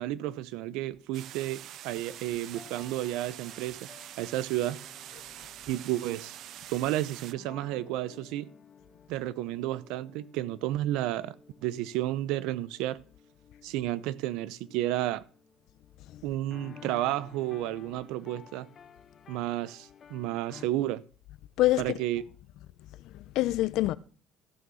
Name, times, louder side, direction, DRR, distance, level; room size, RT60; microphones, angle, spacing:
voice 1, 0.0-3.8 4.2-4.8 5.7-6.4 6.7-8.5 9.1-11.3 11.6-13.0 13.6-15.2 16.2-18.7 19.3-21.0 21.8-22.2, right 14 dB, 90° right, 0.8 m, -32 dB
sound 1, 1.1-7.3, right 12 dB, 60° right, 0.5 m, -45 dB
sound 2, 2.1-20.7, left 7 dB, 35° left, 1.4 m, -55 dB
voice 2, 21.6-21.9 23.0-24.0, left 16 dB, 70° left, 0.7 m, -26 dB
14.0 x 6.3 x 7.0 m
cardioid pair, 135°, 0 cm